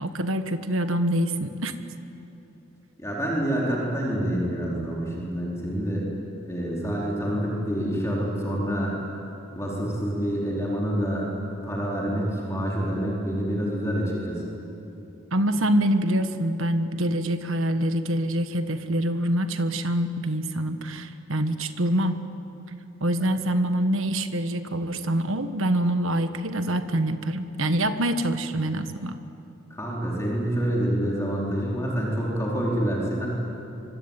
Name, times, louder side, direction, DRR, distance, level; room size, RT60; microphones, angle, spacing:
voice 1, 0.0-1.7 15.3-22.2 23.0-29.2, right 1 dB, 70° right, 9 dB, 1.4 m, -25 dB
voice 2, 3.0-6.1 6.5-9.0 9.5-11.3 11.6-14.4 23.2-23.3 29.7-33.3, equal, 15° left, -4 dB, 4.3 m, -27 dB
25.0 x 24.5 x 9.1 m, 2.9 s
head